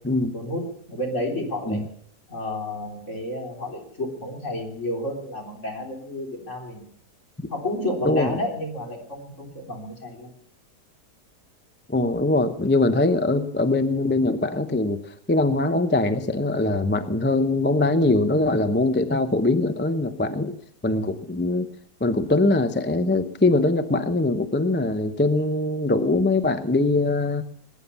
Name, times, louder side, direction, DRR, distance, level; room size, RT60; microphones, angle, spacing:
voice 1, 0.3-1.8 2.3-6.8 7.5-10.3, left 1 dB, 45° left, 0 dB, 4.0 m, -31 dB
voice 2, 8.0-8.4 11.9-15.0 15.3-20.5 20.8-21.7 22.0-27.4, left 2 dB, 15° left, 10 dB, 0.4 m, -22 dB
20.0 x 9.9 x 7.0 m, 0.65 s
omnidirectional pair, 1.8 m